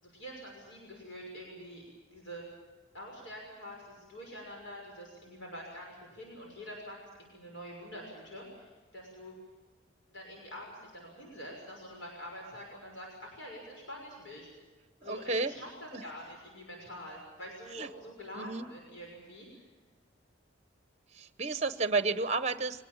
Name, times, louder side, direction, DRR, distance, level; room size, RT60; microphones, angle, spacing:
voice 1, 0.0-1.8 2.1-2.4 2.9-9.3 10.1-14.5 15.0-19.6, equal, 80° left, -1 dB, 6.2 m, -46 dB
voice 2, 15.0-15.5 15.9-16.0 17.7-17.9 18.3-18.7 21.1-22.8, right 3 dB, 35° right, 12 dB, 0.9 m, -31 dB
24.0 x 19.5 x 7.3 m, 1.3 s
head